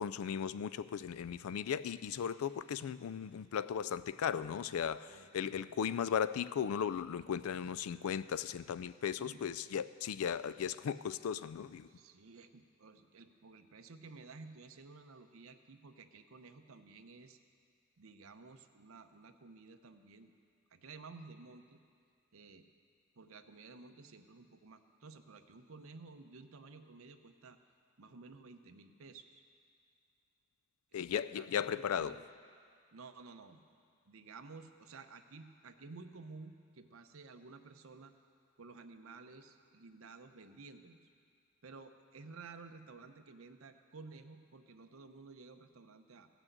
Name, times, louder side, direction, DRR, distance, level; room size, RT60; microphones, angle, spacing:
voice 1, 0.0-11.9 30.9-32.2, left 8 dB, 85° left, 16 dB, 0.4 m, -36 dB
voice 2, 5.1-5.8 9.2-9.5 11.9-17.4 18.0-20.3 20.7-21.8 22.3-22.7 23.2-27.6 28.0-29.4 30.9-32.2 32.9-33.6 34.0-38.1 38.6-41.0 41.6-46.3, right 4 dB, 75° right, 7 dB, 0.7 m, -54 dB
15.5 x 6.2 x 7.9 m, 2.2 s
head